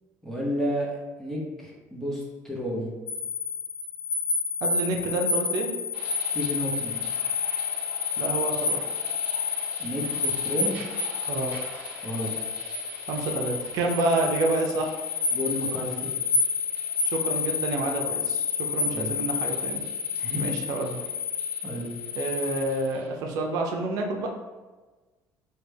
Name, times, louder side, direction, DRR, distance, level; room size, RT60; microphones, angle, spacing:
voice 1, 0.2-0.9 1.2-2.9 6.3-7.0 9.8-10.8 12.0-12.3 15.3-16.1 18.9-19.1 20.2-20.5 21.6-21.9, equal, 5° left, -4 dB, 0.8 m, -31 dB
sound 1, 3.1-22.9, left 5 dB, 55° left, 0.6 m, -29 dB
voice 2, 4.6-5.7 8.2-8.9 11.3-11.6 13.1-15.0 17.0-19.8 20.3-21.0 22.1-24.3, right 2 dB, 70° right, 2 dB, 0.5 m, -28 dB
sound 2, 5.9-23.1, right 1 dB, 20° right, 1.1 m, -46 dB
3.2 x 2.2 x 3.3 m, 1.2 s
cardioid pair, 130°, 6 cm